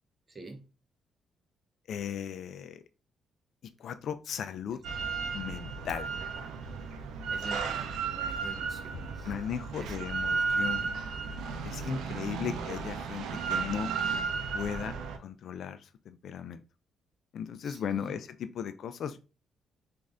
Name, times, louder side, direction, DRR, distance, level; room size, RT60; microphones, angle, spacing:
voice 1, 0.3-0.6 4.7-5.2 6.0-6.6 7.3-9.4 9.8-10.4 11.7-12.6 17.6-18.2, right 2 dB, 30° right, 0.9 m, -48 dB
voice 2, 1.9-2.8 3.8-4.8 5.3-6.1 9.2-10.9 11.6-13.9 14.5-15.8 16.1-16.6 17.3-19.2, left 8 dB, 65° left, 0.3 m, -36 dB
Drill, 4.8-15.2, right 5 dB, 80° right, 0.5 m, -34 dB
3.2 x 2.6 x 3.5 m
cardioid pair, 90°, 0 cm